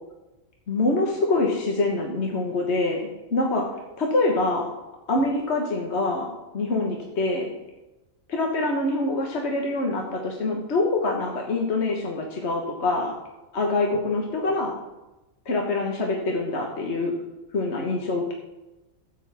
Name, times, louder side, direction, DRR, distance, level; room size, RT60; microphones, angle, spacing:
voice 1, 0.7-3.0 3.3-4.7 5.1-6.3 6.5-7.5 8.3-13.1 13.5-14.7 15.5-17.2 17.5-18.3, left 2 dB, 55° left, 0 dB, 1.6 m, -25 dB
13.0 x 9.3 x 3.5 m, 1.0 s
omnidirectional pair, 1.4 m